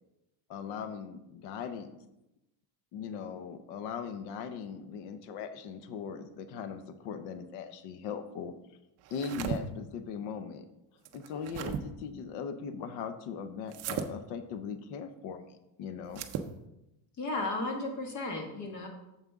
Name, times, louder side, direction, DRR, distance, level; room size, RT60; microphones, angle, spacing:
voice 1, 0.5-1.9 2.9-8.5 9.1-10.7 11.1-16.2, left 6 dB, 55° left, 10 dB, 0.8 m, -39 dB
sound 1, 9.0-9.6 11.1-11.8 13.7-14.1 16.1-16.5, right 8 dB, 35° right, 0.5 m, -36 dB
voice 2, 17.2-18.9, left 2 dB, 35° left, 3 dB, 1.6 m, -34 dB
9.1 x 7.3 x 3.6 m, 0.91 s
cardioid pair, 170°, 48 cm